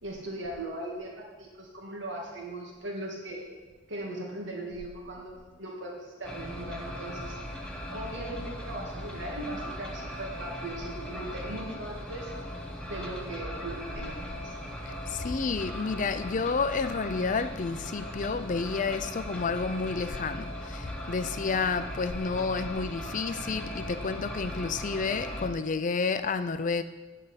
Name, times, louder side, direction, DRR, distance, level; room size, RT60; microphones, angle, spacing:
voice 1, 0.0-3.5 3.9-12.3 12.9-14.5, right 1 dB, 85° right, -1 dB, 2.0 m, -39 dB
sound 1, 6.2-25.5, equal, 5° left, 1.0 m, -38 dB
voice 2, 14.9-26.8, left 4 dB, 45° left, 11 dB, 0.5 m, -30 dB
8.6 x 5.5 x 7.9 m, 1.3 s
head